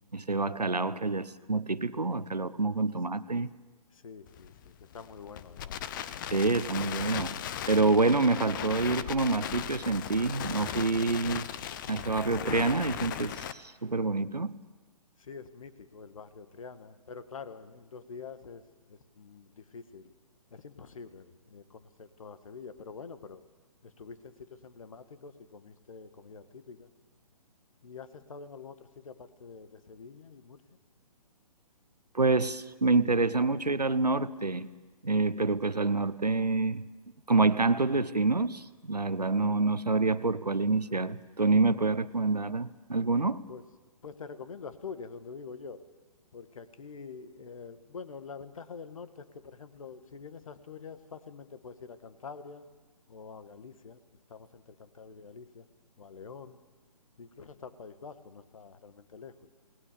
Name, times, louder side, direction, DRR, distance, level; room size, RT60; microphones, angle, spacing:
voice 1, 0.1-3.5 6.3-7.4 7.7-11.5 11.9-14.6 32.1-34.7 35.0-36.8 37.3-43.4, right 3 dB, 90° right, 15 dB, 1.0 m, -27 dB
voice 2, 3.9-5.8 15.2-18.6 18.9-20.1 20.5-23.4 23.8-26.9 27.8-30.8 43.5-43.6 44.0-45.8 46.3-52.7 53.1-54.0 54.3-55.7 56.0-56.6 57.2-59.3, left 5 dB, 60° left, 11 dB, 1.7 m, -46 dB
Crackle, 4.3-13.5, left 10 dB, 30° left, 0.9 m, -38 dB
28.5 x 20.0 x 6.9 m, 1.2 s
figure-of-eight pair, 135°, 20 cm